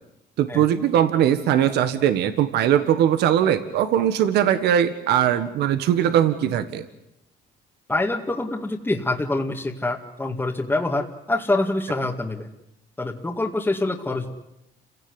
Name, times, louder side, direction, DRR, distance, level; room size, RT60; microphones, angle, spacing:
voice 1, 0.4-6.8, right 10 dB, 75° right, 10 dB, 1.7 m, -20 dB
voice 2, 7.9-12.5 13.0-14.3, left 2 dB, 10° left, -1 dB, 2.2 m, -25 dB
29.5 x 17.0 x 9.8 m, 0.88 s
cardioid pair, 110°, 17 cm